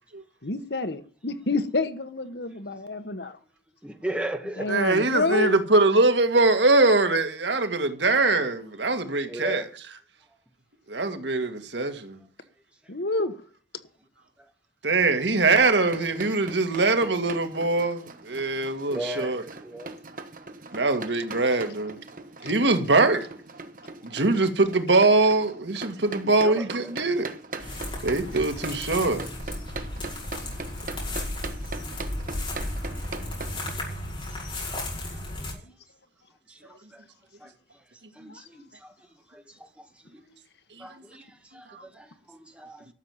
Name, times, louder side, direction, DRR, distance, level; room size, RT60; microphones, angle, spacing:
voice 1, 0.4-3.4 4.6-5.6 12.9-13.3 38.3-38.4, left 2 dB, 70° left, 1.4 m, -28 dB
voice 2, 3.8-4.7 9.3-9.6 18.9-19.4 19.6-19.9 26.2-26.9 33.8-33.9 36.5-37.0 37.4-37.5 38.2-38.9 39.3-39.8 40.1-40.2 40.8-42.9, right 1 dB, 5° right, 2.1 m, -36 dB
voice 3, 4.7-9.7 10.9-12.2 14.8-19.4 20.7-22.0 22.4-23.3 24.0-27.3 28.0-29.2 41.7-41.8, right 3 dB, 80° right, 1.9 m, -22 dB
sound 1, 15.8-33.7, right 3 dB, 50° right, 1.4 m, -40 dB
sound 2, 27.6-35.5, left 1 dB, 30° left, 6.0 m, -34 dB
13.0 x 7.2 x 9.0 m
head